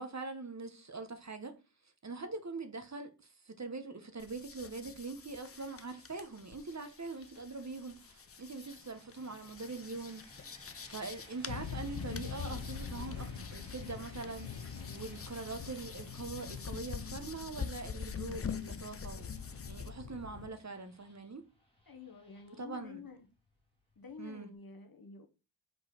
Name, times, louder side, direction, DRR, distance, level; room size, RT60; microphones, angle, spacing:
voice 1, 0.0-1.6 2.0-10.2 10.8-21.5 22.6-23.0 24.2-24.5, right 3 dB, 40° right, 0.9 m, -43 dB
sound 1, 4.2-19.9, left 6 dB, 35° left, 0.5 m, -46 dB
sound 2, 5.6-24.5, left 1 dB, 10° left, 2.0 m, -61 dB
sound 3, 11.5-20.5, left 6 dB, 75° left, 0.8 m, -44 dB
voice 2, 21.9-23.3 24.0-25.3, left 5 dB, 50° left, 1.2 m, -50 dB
5.0 x 4.0 x 4.9 m
wide cardioid pair, 80°, 44 cm